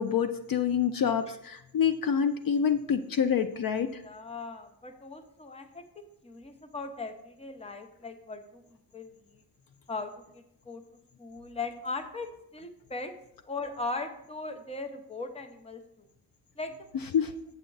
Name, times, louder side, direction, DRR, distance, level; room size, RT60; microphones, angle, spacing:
voice 1, 0.0-4.0 17.1-17.3, left 7 dB, 60° left, 9 dB, 0.5 m, -27 dB
voice 2, 4.0-5.8 6.2-8.6 8.9-9.1 9.9-10.8 11.2-13.1 13.5-16.1 16.6-17.1, left 3 dB, 15° left, 7 dB, 0.6 m, -39 dB
7.7 x 7.1 x 3.9 m, 0.79 s
wide cardioid pair, 170°, 40 cm